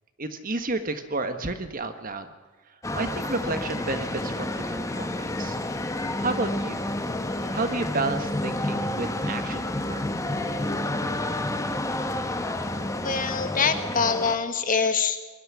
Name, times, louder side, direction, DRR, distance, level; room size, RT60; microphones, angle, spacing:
voice 1, 0.2-2.3 2.9-5.6 6.2-6.8 7.5-10.0, right 3 dB, 45° right, 8 dB, 1.5 m, -31 dB
sound 1, 2.8-14.4, left 1 dB, 15° left, 1.1 m, -30 dB
voice 2, 12.9-15.2, left 5 dB, 40° left, 8 dB, 1.5 m, -24 dB
21.5 x 12.0 x 9.9 m, 1.2 s
head